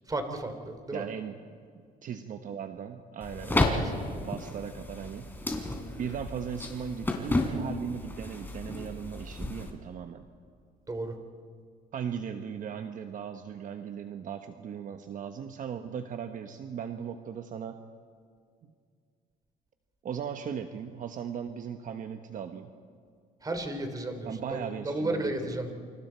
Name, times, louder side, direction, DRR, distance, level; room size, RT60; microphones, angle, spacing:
voice 1, 0.1-1.1 3.6-3.8 10.9-11.1 23.4-25.7, right 2 dB, 20° right, 6 dB, 3.0 m, -33 dB
voice 2, 0.9-1.3 2.0-3.9 4.2-5.3 6.0-10.3 11.9-17.8 18.6-18.7 20.0-22.7 24.2-25.3, right 7 dB, 50° right, 7 dB, 1.2 m, -38 dB
sound 1, 3.2-9.7, left 2 dB, 10° left, 3.5 m, -32 dB
28.5 x 26.5 x 4.6 m, 2.2 s
cardioid pair, 110°, 17 cm